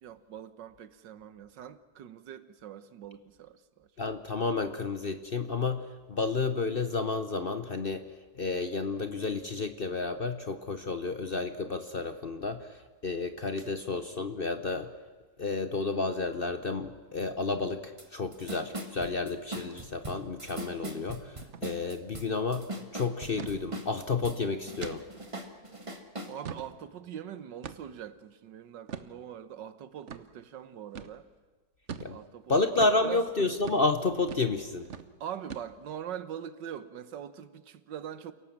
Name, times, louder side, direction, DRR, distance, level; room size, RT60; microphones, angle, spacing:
voice 1, 0.0-3.9 13.6-13.8 22.2-22.3 26.3-31.3 32.1-33.3 35.2-38.3, right 9 dB, 80° right, 1.7 m, -43 dB
voice 2, 4.0-8.0 8.3-14.9 15.4-22.7 22.9-25.0 32.0-32.2 32.5-34.9, left 3 dB, 40° left, 0.9 m, -31 dB
sound 1, 18.0-18.1 18.3-24.4 24.7-26.3, right 1 dB, 20° right, 1.5 m, -40 dB
sound 2, 21.4-21.7 22.0-22.1 22.4-22.7 23.4-23.6 24.1-24.2 24.8-25.0 25.5-25.6 26.2-26.7 27.6-28.0 28.9-29.1 30.1-30.2 30.9-31.1 31.9-32.1 32.8-33.0 33.6-33.8 34.3-34.5 34.8-35.1 35.5-36.0, right 7 dB, 50° right, 1.1 m, -41 dB
28.5 x 18.0 x 7.4 m
omnidirectional pair, 1.9 m